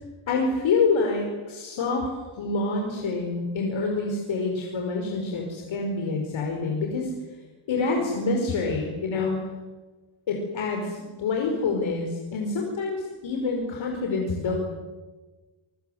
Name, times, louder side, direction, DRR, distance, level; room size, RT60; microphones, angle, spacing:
voice 1, 0.3-2.1 2.4-7.1 7.7-9.4 10.3-14.6, left 3 dB, 65° left, 1 dB, 5.3 m, -27 dB
27.0 x 24.0 x 8.0 m, 1.2 s
wide cardioid pair, 170°, 49 cm